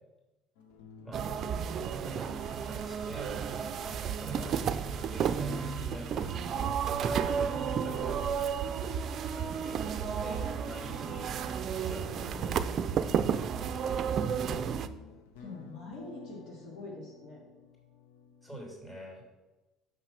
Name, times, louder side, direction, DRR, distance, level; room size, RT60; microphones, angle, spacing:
sound 1, 0.6-18.7, left 4 dB, 80° left, 0.9 m, -53 dB
sound 2, 1.1-14.9, right 7 dB, 50° right, 0.5 m, -32 dB
voice 1, 1.7-3.3 4.1-4.6 5.1-6.1 6.6-8.4 9.3-11.2 11.8-13.3 13.8-14.2 18.4-19.2, right 1 dB, 10° left, -1 dB, 3.1 m, -46 dB
sound 3, 2.1-11.9, left 1 dB, 35° left, 3.1 m, -57 dB
voice 2, 12.2-12.5 15.4-17.4, left 3 dB, 65° left, -2 dB, 2.3 m, -45 dB
6.1 x 5.8 x 5.9 m, 1.1 s
supercardioid pair, 85°, 0 cm